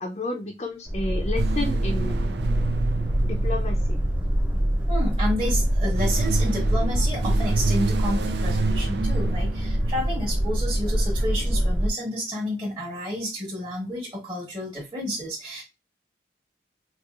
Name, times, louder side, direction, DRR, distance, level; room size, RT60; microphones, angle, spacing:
voice 1, 0.0-2.5 3.3-4.0, left 2 dB, 35° left, 1 dB, 0.5 m, -31 dB
Boat Water vehicle, 0.9-11.9, equal, 5° right, 0.6 m, -24 dB
sound 1, 1.4-4.7 5.6-10.4, right 5 dB, 75° right, 0.4 m, -30 dB
voice 2, 4.9-15.6, equal, 25° right, -6 dB, 1.4 m, -30 dB
4.6 x 2.4 x 2.4 m, 0.24 s
head